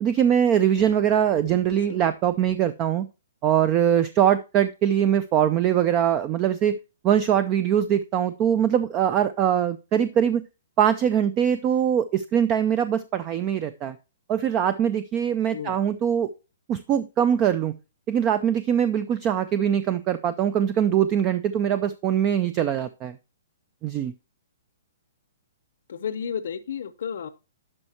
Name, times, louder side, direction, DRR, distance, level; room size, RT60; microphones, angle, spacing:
voice 1, 0.0-3.1 3.4-6.8 7.0-10.4 10.8-14.0 14.3-16.3 16.7-17.8 18.1-23.2 23.8-24.1, right 9 dB, 20° right, 14 dB, 0.4 m, -22 dB
voice 2, 25.9-27.3, left 7 dB, 65° left, 13 dB, 0.7 m, -32 dB
10.5 x 5.4 x 2.9 m, 0.29 s
hypercardioid pair, 165°, 0 cm